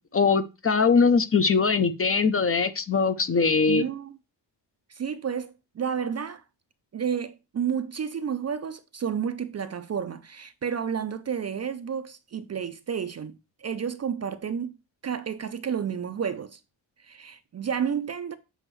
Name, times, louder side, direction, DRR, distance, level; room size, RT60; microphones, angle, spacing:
voice 1, 0.1-3.8, left 5 dB, 30° left, 0.5 m, -21 dB
voice 2, 3.7-4.2 4.9-6.4 6.9-14.8 15.0-16.6 17.0-18.4, right 7 dB, 35° right, 0.4 m, -31 dB
7.8 x 5.3 x 3.1 m
wide cardioid pair, 155°, 46 cm